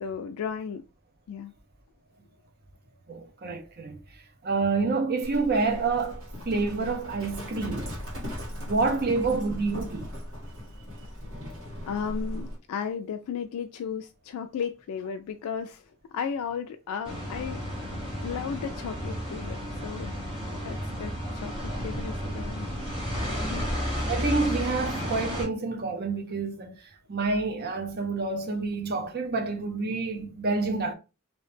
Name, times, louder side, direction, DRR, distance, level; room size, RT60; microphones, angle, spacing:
voice 1, 0.0-0.8 1.3-1.5 11.9-20.1 20.6-22.7 23.5-23.7, left 7 dB, 85° left, 0.3 m, -35 dB
voice 2, 3.1-4.0 4.4-7.9 8.6-10.1 24.1-26.8 27.1-30.9, right 3 dB, 45° right, 0.7 m, -28 dB
Livestock farm animals working animals, 5.2-12.6, equal, 60° right, 1.6 m, -38 dB
sound 1, 17.0-25.5, equal, 25° right, 1.5 m, -32 dB
3.0 x 2.7 x 3.2 m
head